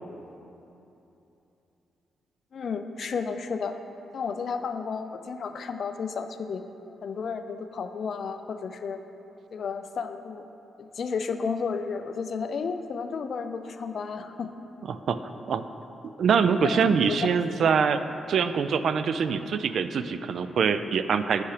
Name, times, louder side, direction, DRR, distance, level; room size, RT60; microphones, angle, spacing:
voice 1, 2.5-3.7 4.1-6.6 7.0-9.0 9.5-10.5 10.8-14.5 16.6-17.2, left 5 dB, 55° left, 9 dB, 0.5 m, -32 dB
voice 2, 14.9-15.2 15.5-15.6 16.2-18.0 18.3-21.4, right 6 dB, 65° right, 11 dB, 0.3 m, -24 dB
8.5 x 5.9 x 4.9 m, 2.9 s
cardioid pair, 105°, 0 cm